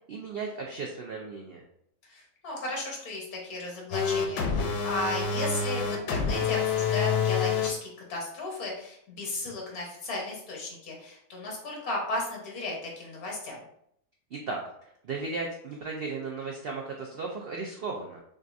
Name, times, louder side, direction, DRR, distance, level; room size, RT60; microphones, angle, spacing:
voice 1, 0.1-1.6 14.3-14.6 15.0-18.2, right 4 dB, 75° right, 0 dB, 0.5 m, -35 dB
voice 2, 2.1-13.6, left 2 dB, 70° left, -2 dB, 1.7 m, -35 dB
sound 1, 3.9-7.7, left 6 dB, 90° left, 1.2 m, -27 dB
6.3 x 2.4 x 2.6 m, 0.73 s
omnidirectional pair, 1.6 m